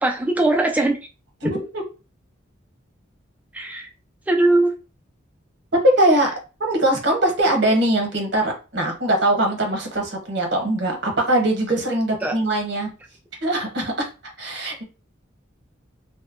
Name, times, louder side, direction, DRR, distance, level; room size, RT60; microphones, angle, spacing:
voice 1, 0.0-1.0 1.4-1.5 3.5-3.9 4.3-4.7 12.2-12.3, right 2 dB, 10° right, 2 dB, 0.3 m, -20 dB
voice 2, 1.4-1.8 5.8-6.3 6.6-12.9 13.4-14.1 14.4-14.8, right 1 dB, 60° right, 2 dB, 0.8 m, -21 dB
2.7 x 2.1 x 2.4 m, 0.32 s
head